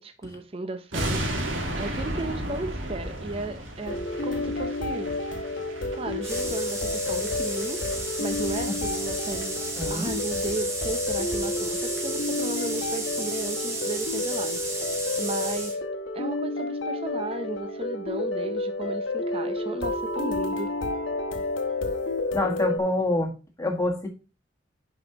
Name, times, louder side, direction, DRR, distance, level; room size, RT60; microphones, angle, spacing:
voice 1, 0.0-4.0 4.2-5.1 5.9-9.6 9.9-14.9 15.2-15.8 16.1-20.7, right 2 dB, 30° right, 0.6 m, -35 dB
sound 1, 0.9-10.1 10.4-10.5 10.9-11.0 11.3-11.4 11.6-12.0 12.2-12.3, right 1 dB, 85° right, 2.2 m, -35 dB
sound 2, 3.9-22.8, left 2 dB, 80° left, 1.1 m, -30 dB
Wick of detonation bomb., 6.2-15.8, right 2 dB, 15° right, 1.7 m, -33 dB
voice 2, 9.7-10.1 22.3-23.3 23.6-24.1, left 2 dB, 15° left, 1.6 m, -26 dB
10.5 x 5.2 x 2.9 m
head